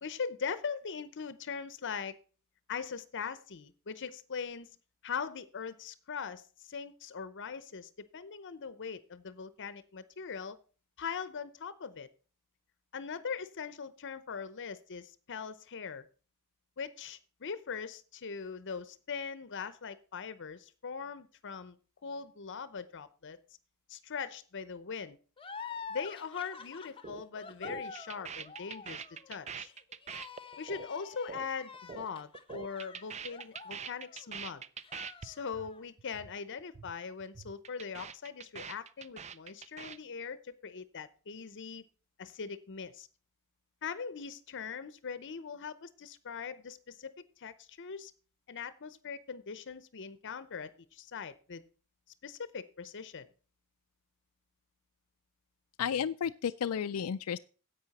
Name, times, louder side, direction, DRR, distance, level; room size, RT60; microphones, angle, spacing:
voice 1, 0.0-2.1 2.7-4.7 5.0-10.6 11.0-12.1 12.9-16.1 16.8-21.8 22.0-23.4 23.9-25.2 25.9-29.7 30.6-34.6 35.2-41.8 42.2-43.1 43.8-48.1 48.5-51.6 52.2-53.3, left 6 dB, 55° left, 15 dB, 0.7 m, -41 dB
sound 1, 25.4-34.4 34.8-35.8, left 5 dB, 25° left, 0.8 m, -47 dB
sound 2, 27.0-27.2 27.5-32.1 32.3-35.3 35.5-35.7 36.0-36.3 36.6-36.9 37.2-40.0, right 6 dB, 30° right, 0.5 m, -44 dB
voice 2, 55.8-57.4, left 8 dB, 85° left, 10 dB, 0.4 m, -32 dB
10.5 x 8.3 x 4.1 m, 0.37 s
head